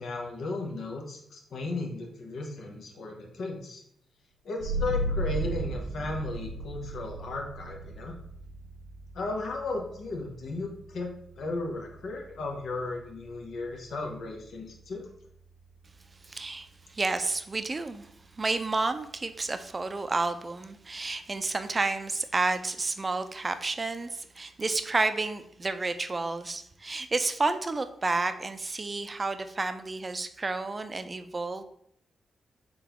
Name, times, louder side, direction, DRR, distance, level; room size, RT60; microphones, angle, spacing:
voice 1, 0.0-3.8 4.4-8.1 9.1-11.1 11.4-15.1, left 2 dB, 70° left, 1 dB, 0.8 m, -35 dB
sound 1, 4.6-15.8, right 1 dB, 90° right, 0.7 m, -37 dB
voice 2, 16.2-18.1 18.3-31.6, right 3 dB, 35° right, 9 dB, 0.4 m, -30 dB
3.9 x 3.8 x 2.9 m, 0.74 s
supercardioid pair, 45°, 0 cm